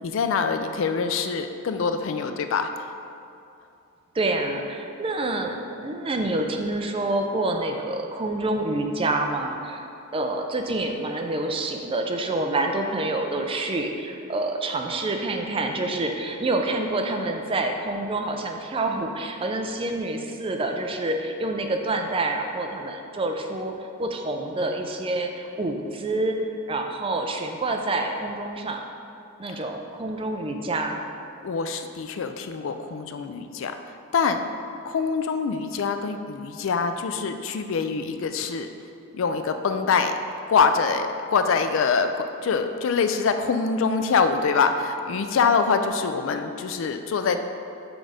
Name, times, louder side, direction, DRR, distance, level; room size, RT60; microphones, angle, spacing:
voice 1, 0.0-2.9 31.4-34.4 34.9-38.7 39.1-40.1 40.5-47.4, left 5 dB, 60° left, 8 dB, 0.3 m, -24 dB
voice 2, 4.1-9.8 10.1-23.7 24.0-26.4 26.7-28.8 29.4-31.0, right 2 dB, 25° right, 3 dB, 0.4 m, -27 dB
6.0 x 3.9 x 4.9 m, 2.6 s
head